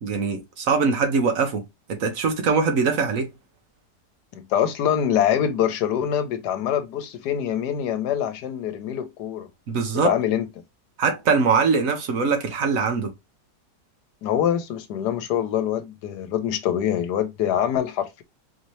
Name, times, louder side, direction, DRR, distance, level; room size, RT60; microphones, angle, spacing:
voice 1, 0.0-3.3 9.7-10.1 11.0-13.1, right 5 dB, 60° right, 1.2 m, -22 dB
voice 2, 4.3-9.5 10.0-10.5 14.2-18.2, left 9 dB, 75° left, 1.3 m, -24 dB
4.4 x 2.8 x 3.1 m
omnidirectional pair, 1.8 m